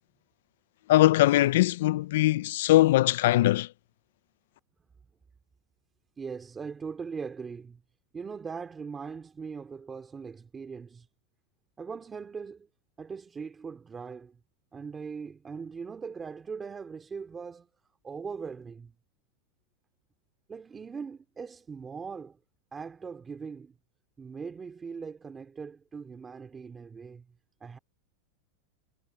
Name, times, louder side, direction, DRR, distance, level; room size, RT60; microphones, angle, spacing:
voice 1, 0.9-3.7, left 15 dB, 70° left, 0.4 m, -21 dB
voice 2, 6.2-7.8 8.1-11.1 11.8-12.7 13.0-14.4 14.7-17.7 18.0-18.9 20.5-22.4 22.7-23.7 24.2-27.3 27.6-27.8, right 5 dB, 15° right, 2.6 m, -40 dB
supercardioid pair, 155°, 0 cm